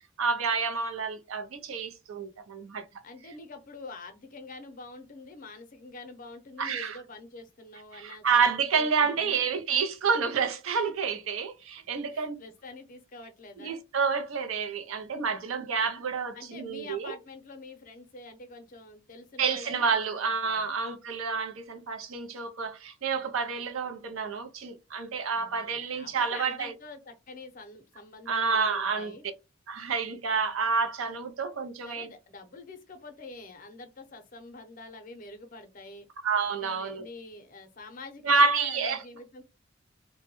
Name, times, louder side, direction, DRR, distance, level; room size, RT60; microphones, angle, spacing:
voice 1, 0.2-2.8 6.6-7.0 7.9-12.4 13.6-17.2 19.4-26.7 28.3-29.1 29.7-32.1 36.2-37.1 38.2-39.0, right 5 dB, 85° right, 0.5 m, -29 dB
voice 2, 3.0-8.5 8.7-9.5 12.0-13.8 16.3-20.7 25.3-29.2 31.8-36.1 36.6-39.4, left 3 dB, 40° left, 0.6 m, -46 dB
2.1 x 2.1 x 2.9 m
head